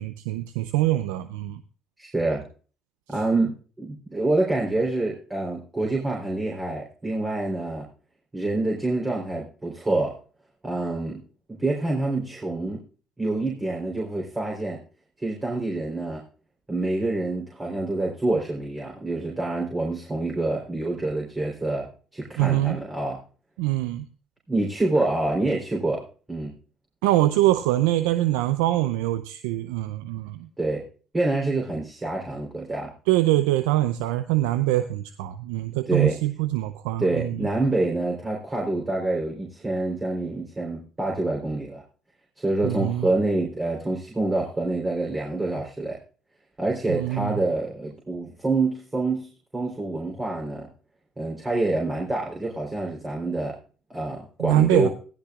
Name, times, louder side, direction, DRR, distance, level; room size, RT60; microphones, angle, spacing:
voice 1, 0.0-1.6 22.4-22.8 23.6-24.1 27.0-30.5 33.1-37.5 42.6-43.1 46.9-47.4 54.4-54.9, right 15 dB, 85° right, 11 dB, 0.5 m, -24 dB
voice 2, 2.0-2.5 3.1-7.9 8.3-10.2 10.6-11.2 11.5-12.8 13.2-14.8 15.2-16.2 16.7-23.2 24.5-26.5 30.6-30.8 31.1-32.9 35.9-36.2 37.0-41.8 42.4-46.0 46.6-50.7 51.2-53.6 53.9-54.9, right 2 dB, 20° right, -2 dB, 3.7 m, -27 dB
16.5 x 11.5 x 2.4 m, 0.39 s
hypercardioid pair, 65°, 0 cm